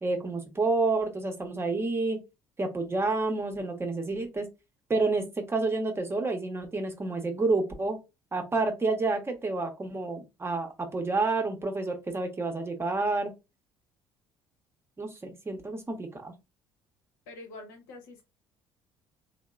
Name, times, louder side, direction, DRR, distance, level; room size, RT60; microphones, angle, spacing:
voice 1, 0.0-2.2 2.6-4.5 4.9-8.0 8.3-13.3 15.0-16.3, right 3 dB, 20° right, 5 dB, 0.8 m, -29 dB
voice 2, 17.3-18.2, left 2 dB, 80° left, 2 dB, 0.8 m, -45 dB
2.8 x 2.0 x 2.3 m, 0.25 s
hypercardioid pair, 55°, 11 cm